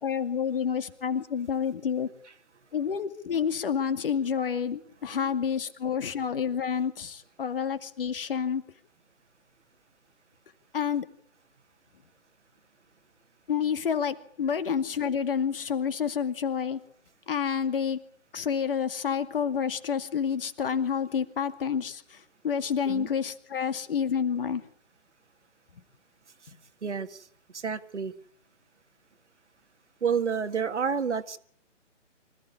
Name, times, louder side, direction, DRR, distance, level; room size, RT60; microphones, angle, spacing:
voice 1, 0.0-2.1 2.7-8.6 10.7-11.1 13.5-16.8 17.3-18.0 18.3-24.6 26.5-26.6, left 7 dB, 45° left, 9 dB, 2.3 m, -29 dB
voice 2, 26.8-27.3 27.5-28.1 30.0-31.4, right 6 dB, 65° right, 10 dB, 1.8 m, -29 dB
25.5 x 15.0 x 9.7 m, 0.63 s
figure-of-eight pair, 145°, 37 cm